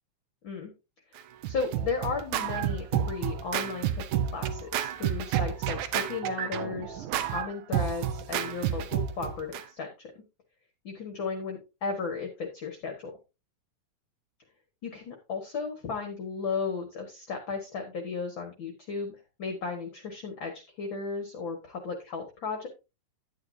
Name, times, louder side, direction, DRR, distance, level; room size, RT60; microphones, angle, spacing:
Scratching (performance technique), 1.2-9.6, right 10 dB, 85° right, 2.3 m, -30 dB
voice 1, 1.5-10.1 10.8-13.1 14.8-22.7, left 4 dB, 50° left, 3 dB, 1.9 m, -35 dB
10.5 x 9.7 x 2.7 m, 0.27 s
omnidirectional pair, 3.5 m